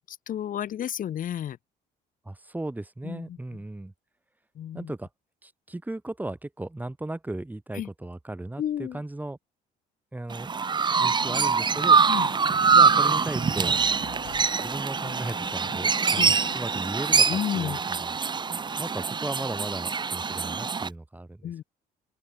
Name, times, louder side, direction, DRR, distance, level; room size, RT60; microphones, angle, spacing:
voice 1, 0.0-1.6 3.0-3.4 4.6-4.9 7.7-7.9 8.6-9.0 12.1-12.3 16.2-16.3 17.3-17.8 21.4-21.6, left 10 dB, 55° left, 2.2 m, -31 dB
voice 2, 2.2-3.9 4.7-5.1 5.4-9.4 10.1-10.5 11.0-12.0 12.7-13.8 14.2-21.6, right 2 dB, 10° right, 6.1 m, -36 dB
Chirp tweet, 10.3-20.9, right 5 dB, 25° right, 1.4 m, -24 dB
sound 1, 11.2-16.9, left 14 dB, 70° left, 6.0 m, -46 dB
open air
cardioid pair, 110°, 17 cm